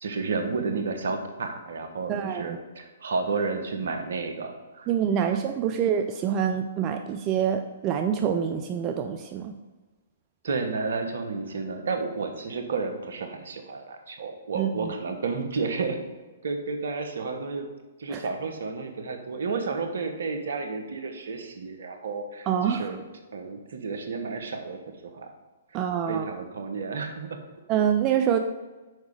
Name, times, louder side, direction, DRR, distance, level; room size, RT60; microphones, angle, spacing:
voice 1, 0.0-4.9 10.4-16.0 16.4-17.7 18.0-23.0 23.3-25.3 26.1-27.4, right 4 dB, 65° right, 6 dB, 1.1 m, -31 dB
voice 2, 2.1-2.6 4.9-9.6 14.5-14.9 18.1-18.2 22.5-22.9 25.7-26.3 27.7-28.4, right 8 dB, 30° right, 6 dB, 0.4 m, -26 dB
6.5 x 4.8 x 4.8 m, 1.2 s
hypercardioid pair, 125°, 0 cm